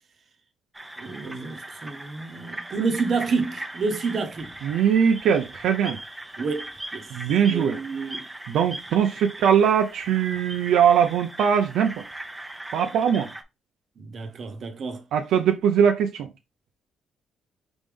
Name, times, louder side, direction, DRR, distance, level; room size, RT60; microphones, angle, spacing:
sound 1, 0.7-13.4, right 1 dB, 10° right, 0.7 m, -40 dB
voice 1, 1.0-4.5 6.4-7.1 7.5-8.3 14.0-15.0, right 4 dB, 50° right, 0.9 m, -29 dB
voice 2, 4.6-6.0 7.1-7.8 8.5-12.0 12.7-13.3 15.1-16.3, right 8 dB, 80° right, 0.5 m, -21 dB
3.9 x 3.6 x 3.4 m
cardioid pair, 90°, 0 cm